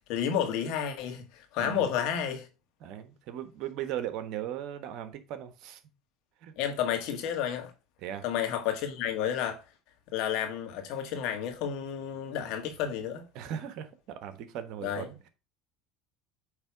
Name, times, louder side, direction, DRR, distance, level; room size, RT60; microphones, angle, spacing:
voice 1, 0.1-2.5 6.6-7.7 8.2-9.6 10.1-13.2 14.8-15.1, left 9 dB, 65° left, 1.8 m, -31 dB
voice 2, 2.8-5.8 6.4-6.5 8.0-8.3 13.3-15.3, right 10 dB, 65° right, 1.2 m, -38 dB
8.8 x 3.5 x 4.7 m
hypercardioid pair, 80°, 0 cm